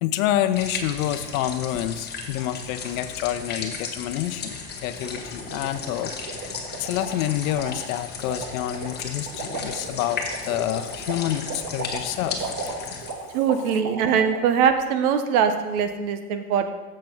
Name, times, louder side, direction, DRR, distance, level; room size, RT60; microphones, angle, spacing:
voice 1, 0.0-6.1 6.8-12.5, left 12 dB, 60° left, 11 dB, 0.8 m, -28 dB
sound 1, 0.5-13.1, left 5 dB, 20° left, 1.3 m, -35 dB
sound 2, 4.9-14.4, right 3 dB, 35° right, 1.5 m, -36 dB
voice 2, 13.3-16.7, right 7 dB, 65° right, 8 dB, 1.1 m, -22 dB
7.6 x 7.6 x 4.5 m, 1.2 s
supercardioid pair, 125°, 47 cm